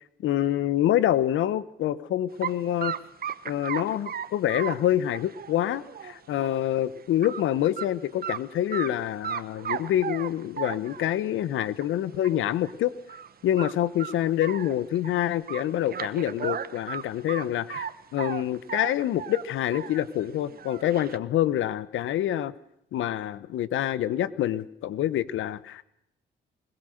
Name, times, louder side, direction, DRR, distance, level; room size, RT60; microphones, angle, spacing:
voice 1, 0.2-2.9 3.4-12.9 13.4-17.9 18.1-22.5 22.9-25.8, left 12 dB, 80° left, 17 dB, 1.0 m, -26 dB
sound 1, 2.4-2.5 2.8-6.6 7.0-7.4 7.8-7.9 8.2-8.9 9.2-11.2 11.8-11.9 12.2-12.3 12.6-12.7 13.1-13.3 13.6-15.1 15.5-17.9 18.2-20.1 20.4-21.2, right 8 dB, 50° right, 1.1 m, -35 dB
21.5 x 21.0 x 6.5 m, 0.78 s
cardioid pair, 90°, 20 cm